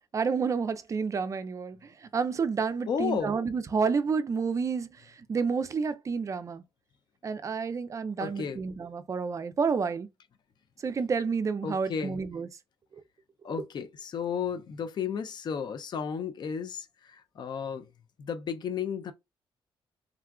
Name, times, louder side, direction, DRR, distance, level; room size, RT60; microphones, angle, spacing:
voice 1, 0.1-4.9 5.3-6.6 7.2-10.1 10.8-12.5, right 5 dB, 35° right, 0.4 m, -29 dB
voice 2, 2.9-3.4 8.2-8.6 11.6-12.2 13.4-17.9 18.2-19.1, left 7 dB, 50° left, 0.5 m, -33 dB
3.6 x 2.3 x 2.2 m
cardioid pair, 110°, 9 cm